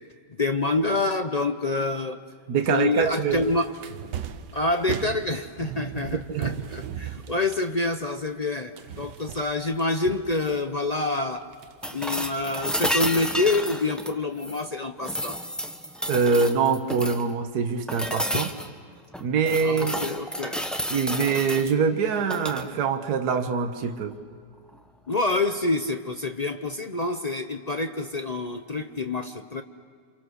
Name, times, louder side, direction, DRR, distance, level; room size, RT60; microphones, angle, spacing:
voice 1, 0.4-2.2 2.7-3.7 4.5-11.5 11.9-15.4 18.3-18.4 19.6-20.6 25.1-29.6, left 2 dB, 45° left, 7 dB, 0.5 m, -27 dB
voice 2, 2.5-3.4 6.3-6.5 16.1-18.5 19.2-20.0 20.9-24.1, right 5 dB, 65° right, 6 dB, 1.7 m, -24 dB
sound 1, 2.9-8.5 8.7-10.8 11.3-12.5, right 9 dB, 85° right, 1.6 m, -38 dB
sound 2, 11.8-14.7 15.0-17.3 17.9-18.7 19.1-21.7 22.2-22.7 24.7-24.8, equal, ahead, 0.9 m, -31 dB
29.0 x 26.5 x 6.5 m, 2.1 s
omnidirectional pair, 1.8 m